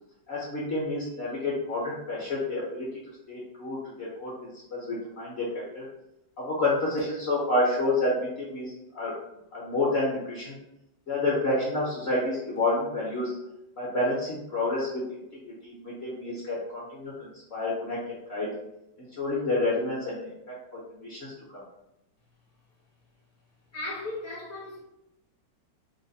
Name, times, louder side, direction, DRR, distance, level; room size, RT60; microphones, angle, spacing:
voice 1, 0.3-4.3 4.7-5.8 6.4-9.1 9.5-10.6 11.1-13.4 13.8-15.2 15.4-18.0 18.3-18.5 19.0-20.4 21.0-21.6, left 2 dB, 45° left, -6 dB, 0.9 m, -29 dB
voice 2, 23.7-24.8, left 2 dB, 15° left, -6 dB, 0.5 m, -36 dB
3.2 x 2.1 x 3.9 m, 0.87 s
omnidirectional pair, 2.0 m